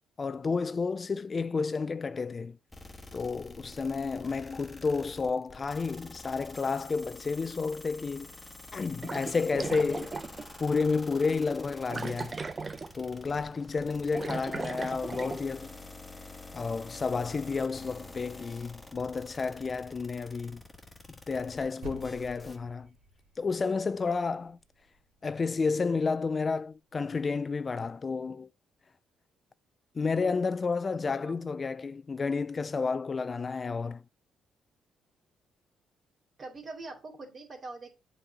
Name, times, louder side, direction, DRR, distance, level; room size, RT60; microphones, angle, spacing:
voice 1, 0.2-2.6 3.1-8.3 8.7-10.2 10.6-12.4 12.9-15.7 16.5-20.6 21.3-22.9 23.4-24.6 25.2-28.5 30.0-34.0, left 4 dB, 35° left, 0.3 m, -31 dB
sound 1, 2.7-22.6, left 2 dB, 15° left, 1.4 m, -48 dB
sound 2, 9.0-10.5 10.9-11.0 11.9-13.1 13.4-13.6 13.9-15.4, right 4 dB, 30° right, 0.5 m, -37 dB
sound 3, 21.8-26.3, right 2 dB, 70° right, 2.7 m, -51 dB
voice 2, 31.1-31.6 36.4-37.9, right 3 dB, 45° right, 2.8 m, -44 dB
7.8 x 4.1 x 5.7 m
cardioid pair, 90°, 0 cm